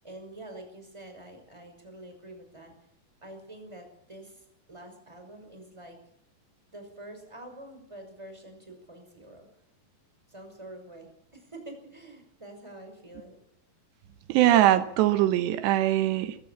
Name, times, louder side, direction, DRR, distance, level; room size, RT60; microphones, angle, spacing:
voice 1, 0.0-2.7 3.2-6.0 6.7-9.5 10.3-13.4, right 1 dB, 5° right, 5 dB, 5.3 m, -46 dB
voice 2, 14.3-16.4, right 13 dB, 85° right, 11 dB, 3.2 m, -22 dB
24.0 x 14.0 x 8.4 m, 0.73 s
omnidirectional pair, 4.9 m